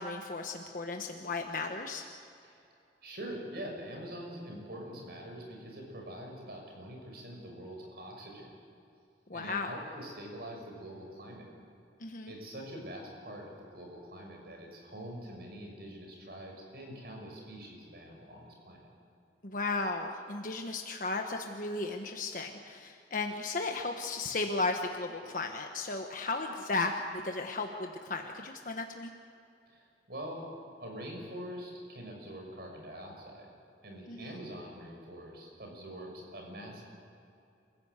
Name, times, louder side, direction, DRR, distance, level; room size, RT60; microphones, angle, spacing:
voice 1, 0.0-2.0 9.3-9.7 12.0-12.3 19.4-29.1 34.1-34.4, left 3 dB, 50° left, 3 dB, 1.3 m, -35 dB
voice 2, 3.0-8.5 9.3-11.5 12.3-18.8 29.7-30.5 30.8-33.5 33.8-36.8, equal, 60° right, 1 dB, 6.3 m, -44 dB
28.0 x 15.5 x 8.2 m, 2.6 s
head